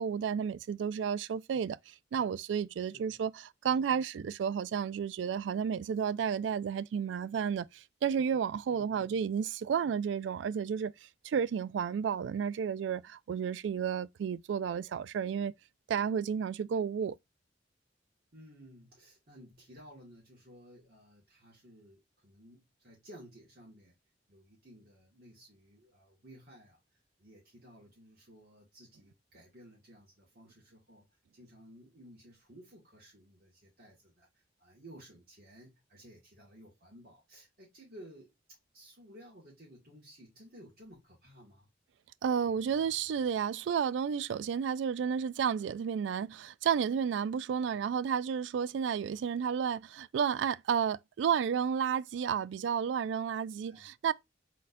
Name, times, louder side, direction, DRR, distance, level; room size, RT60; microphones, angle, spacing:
voice 1, 0.0-15.5 15.9-17.2 42.2-54.1, right 7 dB, 80° right, 0.3 m, -32 dB
voice 2, 2.8-3.2 8.6-9.1 18.3-24.0 24.3-26.8 27.2-31.1 31.3-34.3 34.6-38.3 38.7-41.7 47.5-47.7 53.6-53.9, equal, 55° right, 1.9 m, -55 dB
4.1 x 3.9 x 2.5 m
head